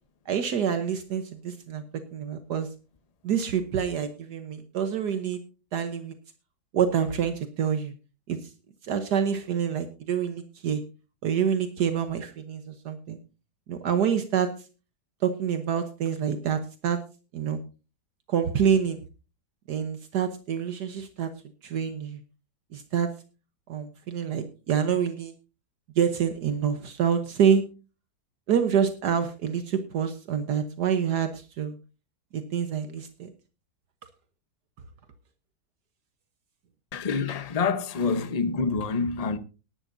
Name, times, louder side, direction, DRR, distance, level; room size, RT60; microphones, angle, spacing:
voice 1, 0.3-1.8 2.1-2.7 3.2-5.4 5.7-6.1 6.7-7.9 8.3-8.4 8.8-10.8 11.2-13.2 13.7-14.5 15.2-17.0 17.3-17.6 18.3-19.0 19.7-21.3 21.6-22.2 22.7-23.1 23.7-25.3 26.0-27.6 28.5-31.8 32.3-33.3, right 7 dB, 70° right, 1.6 m, -27 dB
voice 2, 36.9-39.4, left 4 dB, 30° left, 0.7 m, -27 dB
18.0 x 11.5 x 2.6 m
omnidirectional pair, 1.8 m